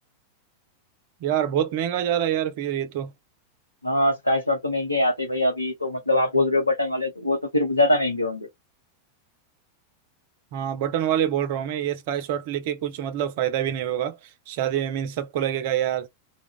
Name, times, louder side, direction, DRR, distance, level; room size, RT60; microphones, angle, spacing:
voice 1, 1.2-3.1 10.5-16.1, right 10 dB, 50° right, 0.4 m, -26 dB
voice 2, 3.8-8.5, left 1 dB, 85° left, 0.5 m, -23 dB
2.2 x 2.1 x 3.5 m
figure-of-eight pair, 90°, 0 cm